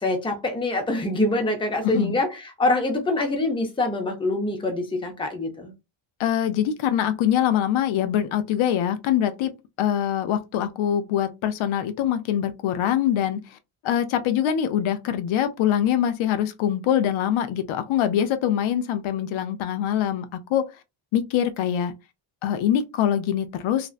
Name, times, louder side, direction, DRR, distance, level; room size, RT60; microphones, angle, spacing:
voice 1, 0.0-5.7, left 2 dB, 10° left, 0.5 m, -25 dB
voice 2, 1.8-2.2 6.2-9.5 9.8-13.6 13.8-20.7 21.1-21.9 22.4-23.9, left 10 dB, 70° left, 0.5 m, -24 dB
2.6 x 2.0 x 2.4 m
cardioid pair, 110°, 50 cm